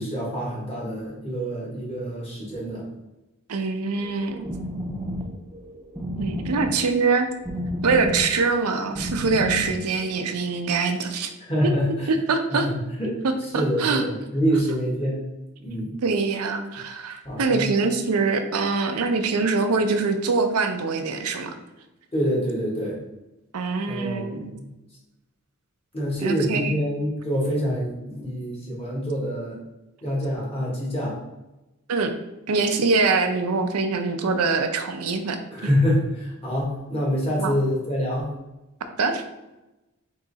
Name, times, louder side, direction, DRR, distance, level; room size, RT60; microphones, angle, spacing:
voice 1, 0.0-2.8 11.5-12.1 12.5-13.2 13.5-15.2 15.6-15.9 17.2-17.7 22.1-23.0 23.8-24.7 25.9-29.6 30.0-31.2 35.5-38.3, equal, 25° left, -5 dB, 1.4 m, -26 dB
voice 2, 3.5-4.5 6.2-7.3 7.8-11.3 12.1-12.7 13.2-14.0 16.0-21.6 23.5-24.5 26.2-26.8 31.9-32.1 32.5-35.7 37.4-37.6 39.0-39.2, right 4 dB, 90° right, 7 dB, 0.5 m, -24 dB
sound 1, 4.0-10.1, equal, 10° right, 0.5 m, -32 dB
3.6 x 3.1 x 3.9 m, 0.99 s
head